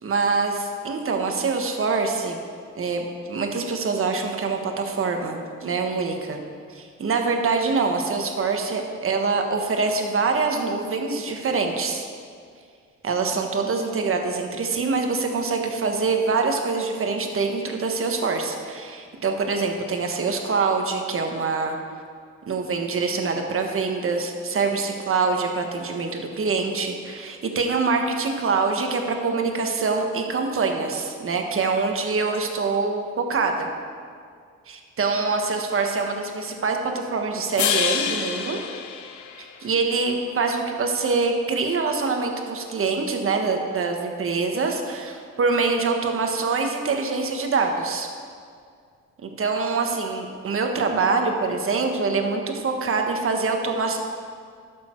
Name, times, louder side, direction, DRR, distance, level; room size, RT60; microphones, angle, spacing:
voice 1, 0.0-2.4 2.8-3.0 3.3-6.4 6.7-12.1 13.0-21.8 22.5-33.7 34.7-38.6 39.6-48.1 49.2-54.0, right 4 dB, 45° right, 3 dB, 1.4 m, -25 dB
sound 1, 37.6-39.9, left 7 dB, 70° left, 0.9 m, -27 dB
12.5 x 6.9 x 4.6 m, 2.2 s
cardioid pair, 90°, 30 cm